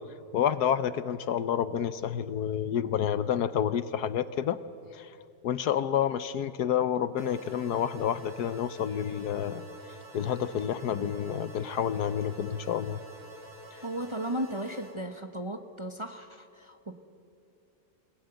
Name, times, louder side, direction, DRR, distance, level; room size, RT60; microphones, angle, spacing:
voice 1, 0.3-4.6 4.9-5.1 5.4-9.6 10.1-13.0, left 9 dB, 70° left, 14 dB, 1.3 m, -29 dB
sound 1, 7.2-15.0, right 1 dB, 60° right, 4.6 m, -48 dB
voice 2, 13.8-16.9, right 1 dB, 20° right, 7 dB, 0.9 m, -35 dB
28.0 x 18.0 x 9.0 m, 2.6 s
omnidirectional pair, 1.9 m